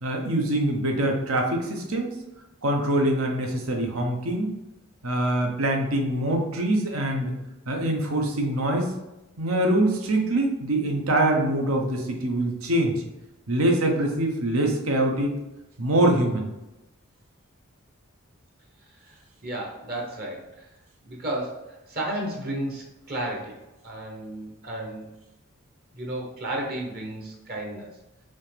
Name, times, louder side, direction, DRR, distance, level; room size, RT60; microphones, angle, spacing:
voice 1, 0.0-2.1 2.6-4.5 5.0-7.3 7.7-8.9 9.4-12.9 13.5-15.3 15.8-16.5, right 1 dB, 85° right, 2 dB, 0.9 m, -24 dB
voice 2, 19.1-20.7 21.0-23.6 23.8-25.1 25.9-27.9, right 1 dB, 45° right, -1 dB, 1.0 m, -33 dB
5.4 x 2.9 x 3.4 m, 0.95 s
head